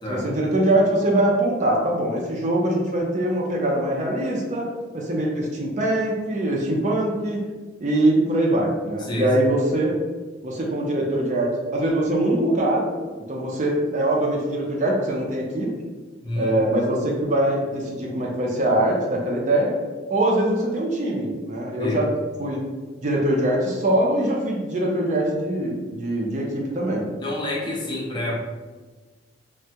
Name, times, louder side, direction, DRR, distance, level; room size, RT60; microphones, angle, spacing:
voice 1, 0.1-4.7 4.9-7.4 7.8-9.9 10.4-12.9 13.3-15.7 16.4-19.7 20.1-22.1 22.4-22.6 23.0-27.0, right 1 dB, 40° right, -1 dB, 0.4 m, -23 dB
voice 2, 9.0-9.4 16.2-16.6 21.8-22.0 27.2-28.4, left 1 dB, 25° left, -3 dB, 0.4 m, -28 dB
3.3 x 2.1 x 2.7 m, 1.3 s
head